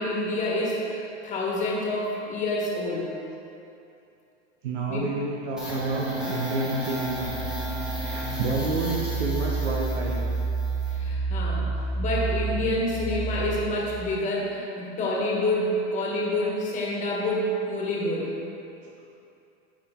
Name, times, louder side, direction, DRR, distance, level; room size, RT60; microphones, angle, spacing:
voice 1, 0.0-3.1 4.9-5.0 10.9-11.7 11.9-18.3, left 1 dB, 20° left, -3 dB, 1.5 m, -28 dB
voice 2, 4.6-7.4 8.0-10.2, right 3 dB, 85° right, -3 dB, 1.1 m, -29 dB
sound 1, 5.6-14.0, right 3 dB, ahead, 1.2 m, -29 dB
9.8 x 5.1 x 3.7 m, 2.7 s
supercardioid pair, 145°, 36 cm